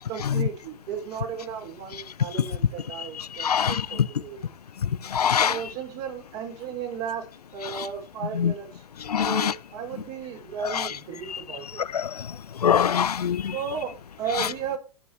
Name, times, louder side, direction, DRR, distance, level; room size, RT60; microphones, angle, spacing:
voice 1, 0.0-4.4 5.4-7.2 7.5-8.8 9.2-11.7 13.5-14.8, right 7 dB, 45° right, 4.8 m, -34 dB
voice 2, 3.0-4.1 4.8-5.6 7.8-7.9 8.3-8.5 9.0-9.5 10.6-10.9 11.3-11.4 11.8-13.6 14.4-14.5, left 8 dB, 90° left, 0.6 m, -25 dB
15.5 x 8.3 x 3.3 m
hypercardioid pair, 115°, 19 cm